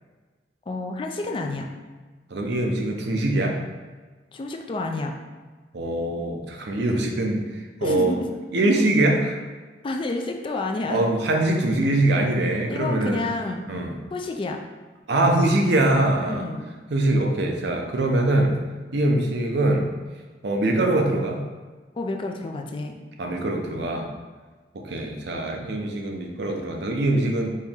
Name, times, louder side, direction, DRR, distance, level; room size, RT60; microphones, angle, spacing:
voice 1, 0.7-1.7 4.3-5.1 7.8-8.3 9.8-11.0 12.7-13.7 14.1-14.6 16.3-16.7 22.0-23.0, left 2 dB, 30° left, 3 dB, 0.3 m, -29 dB
voice 2, 2.3-3.6 5.7-7.4 7.8-8.2 8.5-9.4 10.9-13.2 13.7-13.9 15.1-16.4 16.9-18.6 18.9-19.9 20.4-21.4 23.2-24.1 24.7-27.5, right 1 dB, 65° right, 2 dB, 0.6 m, -23 dB
4.4 x 2.9 x 3.6 m, 1.3 s
head